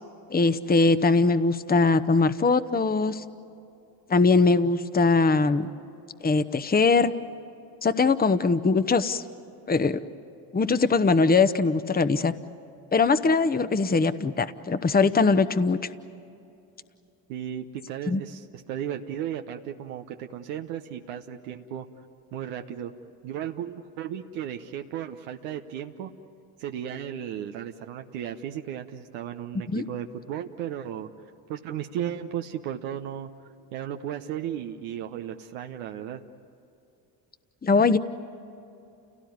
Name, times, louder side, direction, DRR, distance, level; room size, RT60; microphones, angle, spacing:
voice 1, 0.3-3.2 4.1-5.7 6.2-7.1 7.8-9.2 9.7-10.0 10.5-12.3 12.9-15.8 18.1-18.2 29.7-29.8 37.6-38.0, left 4 dB, 20° left, 12 dB, 1.0 m, -21 dB
voice 2, 17.3-21.9 22.3-22.9 23.2-26.1 26.6-31.1 31.5-33.3 33.7-36.2, right 10 dB, 80° right, 4 dB, 1.0 m, -35 dB
29.5 x 18.0 x 9.5 m, 2.7 s
hypercardioid pair, 60°, 49 cm